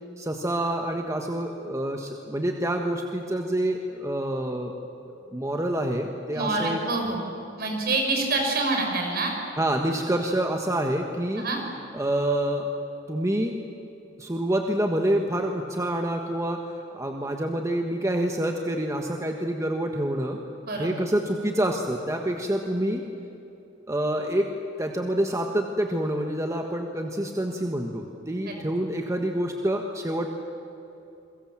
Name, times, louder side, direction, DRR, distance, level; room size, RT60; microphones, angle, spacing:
voice 1, 0.2-4.7 5.3-6.8 9.6-11.4 11.9-12.7 13.1-13.6 14.2-20.4 20.8-23.0 23.9-24.5 24.8-30.3, right 1 dB, 15° right, 3 dB, 1.4 m, -27 dB
voice 2, 6.3-7.2 7.6-9.3 11.4-11.6 20.6-21.0 28.5-28.6, right 3 dB, 55° right, 2 dB, 5.8 m, -26 dB
29.5 x 22.5 x 7.6 m, 2.9 s
head